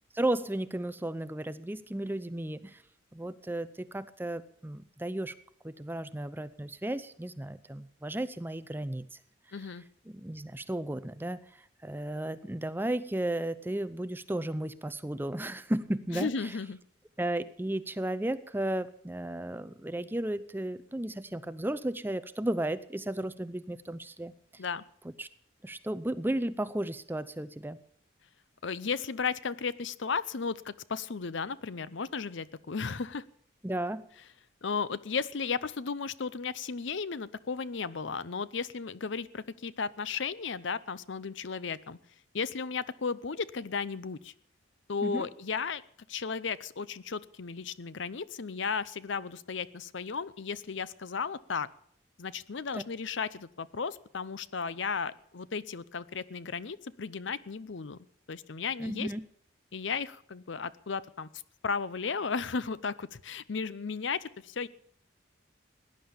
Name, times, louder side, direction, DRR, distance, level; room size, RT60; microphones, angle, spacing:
voice 1, 0.1-2.8 3.1-5.3 5.6-9.2 9.5-9.7 10.1-16.5 17.2-24.6 25.2-25.3 25.6-27.8 33.6-34.0 45.0-45.3 52.7-52.8 58.8-59.2, right 1 dB, 10° right, 14 dB, 0.5 m, -34 dB
voice 2, 9.5-9.8 16.1-16.8 24.6-24.8 28.6-33.2 34.6-42.0 42.3-44.3 44.9-45.8 46.1-51.7 52.2-58.0 58.3-59.1 59.7-61.3 61.6-64.7, left 5 dB, 65° left, 17 dB, 0.6 m, -34 dB
17.5 x 10.5 x 7.1 m, 0.66 s
head